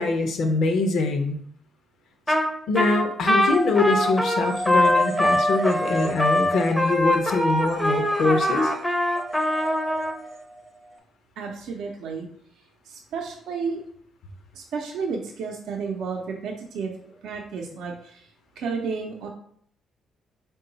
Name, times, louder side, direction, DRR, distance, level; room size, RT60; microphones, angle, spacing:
voice 1, 0.0-1.4 2.7-8.7, left 3 dB, 70° left, 5 dB, 0.6 m, -23 dB
Trumpet, 2.3-2.5 2.8-10.1, left 1 dB, 5° left, 0.5 m, -22 dB
sound 1, 3.5-11.0, right 1 dB, 45° right, 0.7 m, -33 dB
voice 2, 11.4-12.3 12.9-13.8 14.5-18.3 18.6-19.3, right 5 dB, 80° right, 1 dB, 0.5 m, -32 dB
3.7 x 2.3 x 3.8 m, 0.63 s
cardioid pair, 90°, 0 cm